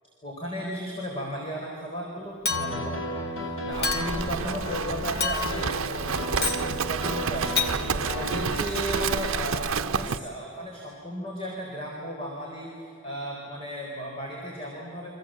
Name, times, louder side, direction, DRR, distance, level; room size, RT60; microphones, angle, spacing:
voice 1, 0.2-15.2, equal, 25° left, -2 dB, 4.3 m, -35 dB
Piano, 2.5-9.4, equal, 90° left, 4.2 m, -34 dB
Chink clink, 2.5-3.0 3.8-4.3 5.2-5.7 6.4-6.7 7.6-7.8, left 5 dB, 50° left, 2.0 m, -28 dB
Livestock farm animals working animals, 3.7-10.2, right 6 dB, 80° right, 0.7 m, -30 dB
29.5 x 25.5 x 7.6 m, 2.6 s
head